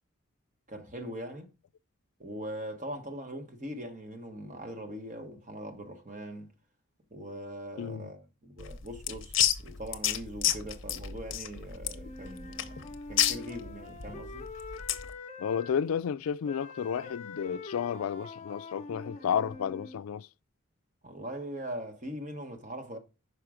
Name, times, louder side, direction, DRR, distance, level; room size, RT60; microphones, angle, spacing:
voice 1, 0.7-1.5 2.2-6.5 7.1-14.5 21.0-23.0, equal, 35° right, 1.2 m, -41 dB
voice 2, 7.8-8.1 15.4-20.3, left 7 dB, 85° left, 0.3 m, -32 dB
sound 1, 8.6-15.1, left 11 dB, 65° left, 0.7 m, -31 dB
Wind instrument woodwind instrument, 11.8-15.8 16.4-20.0, left 3 dB, 35° left, 0.8 m, -45 dB
5.9 x 4.8 x 4.9 m
head